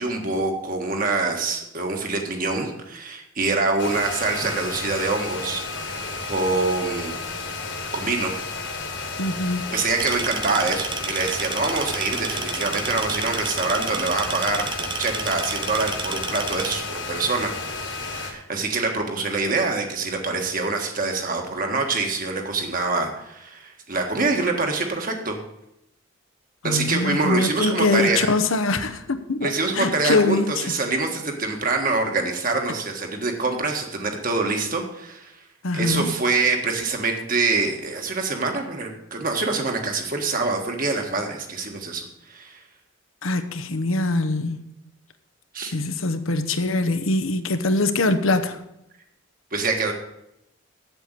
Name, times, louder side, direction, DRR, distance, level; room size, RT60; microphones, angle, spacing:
voice 1, 0.0-7.1 7.9-8.3 9.7-14.6 15.0-25.4 26.6-28.3 29.4-35.4 35.7-42.6 45.5-45.7 49.5-49.9, right 3 dB, 40° right, 3 dB, 1.6 m, -25 dB
sound 1, 3.8-18.3, left 3 dB, 55° left, 1.9 m, -32 dB
voice 2, 9.2-9.7 26.6-29.5 29.8-30.5 35.6-36.1 43.2-44.6 45.7-48.6, left 2 dB, 75° left, 9 dB, 0.9 m, -23 dB
sound 2, 10.0-16.8, right 6 dB, 20° right, 0.5 m, -32 dB
8.0 x 7.7 x 8.2 m, 0.84 s
head